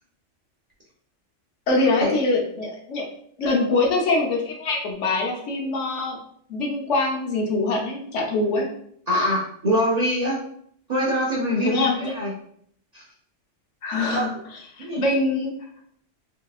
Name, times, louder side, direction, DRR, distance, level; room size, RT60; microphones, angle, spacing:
voice 1, 1.7-3.1 3.4-6.2 6.5-8.7 11.6-12.1 13.8-14.3 14.8-15.5, left 2 dB, 75° left, 0 dB, 1.0 m, -23 dB
voice 2, 9.1-10.4 10.9-12.3 12.9-13.0 14.1-14.3 14.8-15.0, equal, 45° right, -4 dB, 0.6 m, -24 dB
3.1 x 2.7 x 2.3 m, 0.65 s
omnidirectional pair, 1.3 m